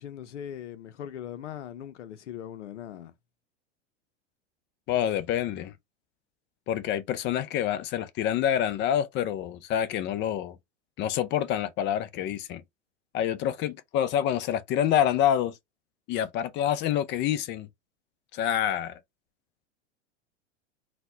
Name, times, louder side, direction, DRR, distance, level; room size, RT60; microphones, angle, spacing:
voice 1, 0.0-3.1, left 10 dB, 85° left, 0.6 m, -40 dB
voice 2, 4.9-5.7 6.7-10.6 11.0-12.6 13.1-15.6 16.1-17.7 18.3-19.0, left 10 dB, 30° left, 0.5 m, -27 dB
4.1 x 2.1 x 2.7 m
hypercardioid pair, 105°, 35 cm